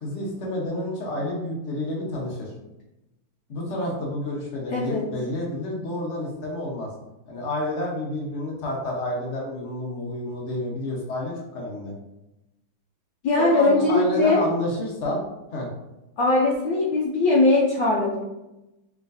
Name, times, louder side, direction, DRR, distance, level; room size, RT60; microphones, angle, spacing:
voice 1, 0.0-2.5 3.5-6.9 7.3-11.9 13.4-15.2 15.5-15.7, left 1 dB, 45° left, -2 dB, 1.0 m, -29 dB
voice 2, 4.7-5.1 13.2-14.4 16.2-18.2, left 2 dB, 70° left, -5 dB, 1.2 m, -20 dB
5.0 x 3.1 x 2.6 m, 0.95 s
omnidirectional pair, 2.3 m